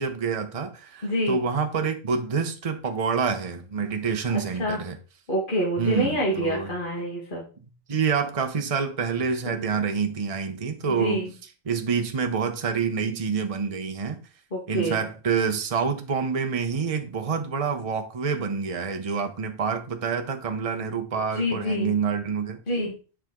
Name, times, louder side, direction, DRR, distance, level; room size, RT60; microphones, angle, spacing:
voice 1, 0.0-5.0 5.8-6.7 7.9-11.3 11.6-14.2 14.7-22.6, right 5 dB, 30° right, 0.9 m, -27 dB
voice 2, 1.0-1.4 4.6-4.8 5.3-7.4 10.9-11.3 14.5-15.0 21.3-21.9 22.7-22.9, equal, 40° left, 2.1 m, -27 dB
10.5 x 5.0 x 3.9 m
omnidirectional pair, 1.4 m